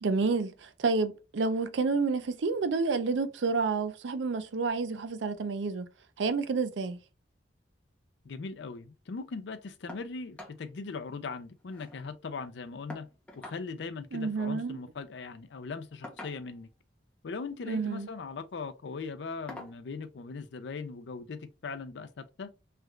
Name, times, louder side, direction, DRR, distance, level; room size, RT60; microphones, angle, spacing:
voice 1, 0.0-5.9 6.2-7.0 14.1-14.8 17.7-18.1, right 4 dB, 75° right, 0.5 m, -29 dB
voice 2, 8.2-13.1 13.4-16.7 17.2-22.5, left 4 dB, 65° left, 0.4 m, -39 dB
sound 1, 9.9-10.1 10.4-10.6 11.0-11.1 11.3-12.0 12.9-13.6 14.9-15.1 16.0-16.7 17.7-18.0 18.5-18.7 19.5-19.8 21.1-21.2 21.7-21.8, left 2 dB, 5° left, 0.7 m, -46 dB
3.2 x 2.4 x 3.0 m
head